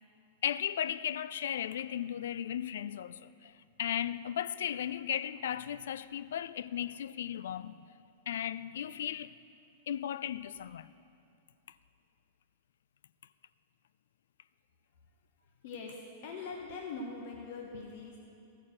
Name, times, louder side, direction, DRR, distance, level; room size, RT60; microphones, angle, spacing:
voice 1, 0.4-3.5 3.8-7.8 8.3-9.3 9.9-10.9, left 10 dB, 80° left, 0.3 m, -36 dB
voice 2, 15.6-18.2, left 4 dB, 60° left, 1.3 m, -42 dB
14.5 x 7.1 x 6.5 m
hypercardioid pair, 130°, 0 cm